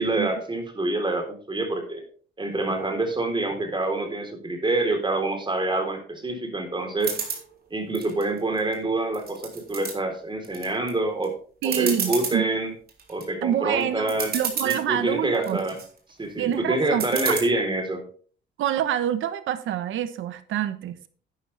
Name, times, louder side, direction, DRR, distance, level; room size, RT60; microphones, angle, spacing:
voice 1, 0.0-2.0 2.4-7.2 7.7-11.4 11.6-12.7 13.1-14.3 14.6-15.8 16.2-18.0, right 2 dB, 25° right, 5 dB, 3.8 m, -26 dB
sound 1, 7.0-7.4 7.9-8.7 9.1-9.9 10.4-10.9 11.2-11.3 11.6-12.4 12.9-13.2 13.8-13.9 14.1-14.8 15.3-15.9 17.0-17.4, right 5 dB, 50° right, 3.9 m, -30 dB
voice 2, 11.6-12.5 13.4-15.6 16.4-17.4 18.6-21.1, right 11 dB, 80° right, 12 dB, 1.1 m, -27 dB
12.0 x 9.9 x 3.4 m, 0.43 s
cardioid pair, 90°, 20 cm